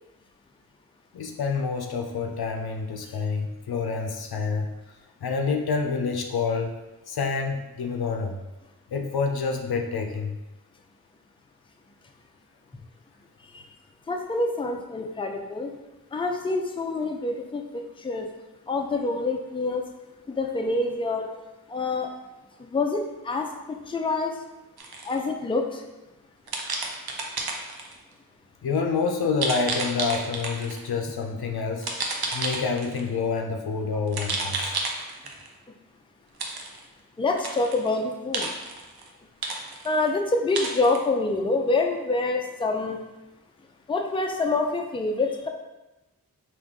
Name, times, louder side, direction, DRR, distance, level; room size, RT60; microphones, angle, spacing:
voice 1, 1.1-4.7 5.2-6.7 7.1-8.4 8.9-10.3 28.6-31.9 32.3-34.8, left 4 dB, 85° left, 3 dB, 0.5 m, -27 dB
voice 2, 14.1-15.7 16.1-18.3 18.7-19.8 20.3-21.3 21.7-22.1 22.6-24.3 25.1-25.8 37.2-38.5 39.8-43.0 43.9-45.5, left 3 dB, 15° left, 3 dB, 0.4 m, -26 dB
sound 1, 24.8-25.2 26.5-27.9 29.4-30.8 31.8-33.1 34.1-35.5 36.4-36.8 37.3-38.0 38.3-39.1 39.4-40.1 40.5-41.0, right 3 dB, 80° right, 0.6 m, -31 dB
3.7 x 2.5 x 3.5 m, 1.0 s
wide cardioid pair, 40°, 37 cm